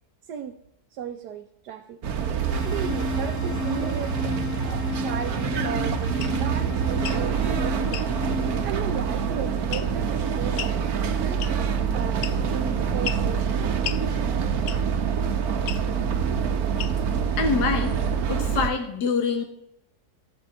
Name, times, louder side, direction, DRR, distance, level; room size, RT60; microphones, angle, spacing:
voice 1, 0.9-2.0 2.6-8.0 8.6-14.1, right 9 dB, 85° right, 5 dB, 1.3 m, -36 dB
sound 1, 2.0-18.7, right 6 dB, 65° right, 1.4 m, -26 dB
sound 2, 2.5-8.7, left 3 dB, 35° left, 1.9 m, -34 dB
sound 3, 6.2-6.4 7.0-7.2 7.9-8.1 9.7-10.1 10.6-10.8 11.4-11.7 12.2-12.6 13.0-13.3 13.8-14.0 14.7-15.0 15.7-15.9 16.8-17.1, left 10 dB, 65° left, 0.8 m, -34 dB
voice 2, 17.4-18.0 18.3-19.4, left 5 dB, 85° left, 5 dB, 1.7 m, -25 dB
14.0 x 5.3 x 8.5 m, 0.77 s
omnidirectional pair, 1.7 m